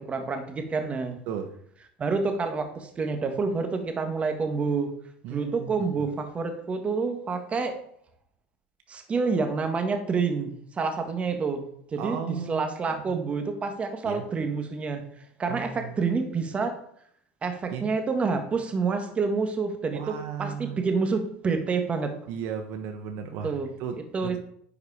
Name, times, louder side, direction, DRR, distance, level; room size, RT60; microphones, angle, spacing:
voice 1, 0.0-1.2 2.0-4.9 5.3-7.8 8.9-15.0 15.4-16.8 17.4-22.2 23.4-23.7 24.1-24.4, right 4 dB, 25° right, 6 dB, 1.5 m, -28 dB
voice 2, 5.2-6.0 12.0-13.2 14.0-14.2 15.5-16.0 17.7-17.9 19.9-20.8 22.3-24.4, right 7 dB, 65° right, 6 dB, 1.0 m, -36 dB
10.0 x 4.8 x 4.9 m, 0.66 s
supercardioid pair, 110°, 5 cm